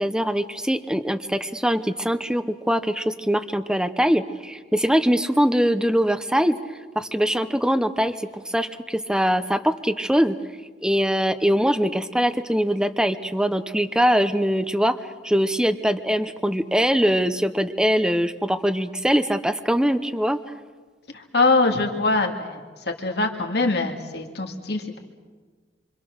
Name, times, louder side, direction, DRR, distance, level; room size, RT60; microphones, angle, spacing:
voice 1, 0.0-6.6 6.9-10.4 10.8-14.9 15.2-20.4, equal, 5° right, 9 dB, 0.8 m, -22 dB
voice 2, 21.1-22.6 22.9-25.0, left 3 dB, 60° left, 3 dB, 2.2 m, -23 dB
27.0 x 25.5 x 6.5 m, 1.4 s
head